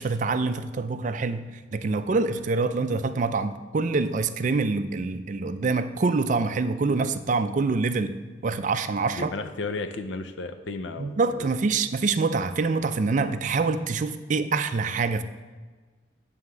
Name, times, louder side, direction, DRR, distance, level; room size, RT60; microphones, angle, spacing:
voice 1, 0.0-9.3 11.0-15.2, right 4 dB, 45° right, 9 dB, 0.4 m, -26 dB
voice 2, 9.1-11.5, left 3 dB, 80° left, 8 dB, 0.6 m, -34 dB
9.4 x 3.5 x 6.5 m, 1.4 s
head